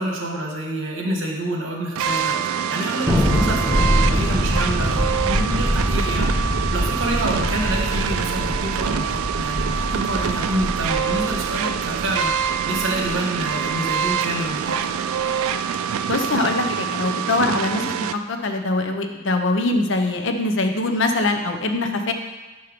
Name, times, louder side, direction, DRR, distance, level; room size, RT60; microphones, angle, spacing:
voice 1, 0.0-14.9, right 1 dB, 65° right, 0 dB, 1.3 m, -28 dB
sound 1, 2.0-18.1, right 7 dB, 80° right, 0.3 m, -25 dB
Thunder, 3.1-13.7, equal, 10° right, 0.9 m, -24 dB
voice 2, 16.1-22.1, left 2 dB, 60° left, 5 dB, 0.7 m, -23 dB
5.8 x 5.5 x 5.0 m, 1.2 s
head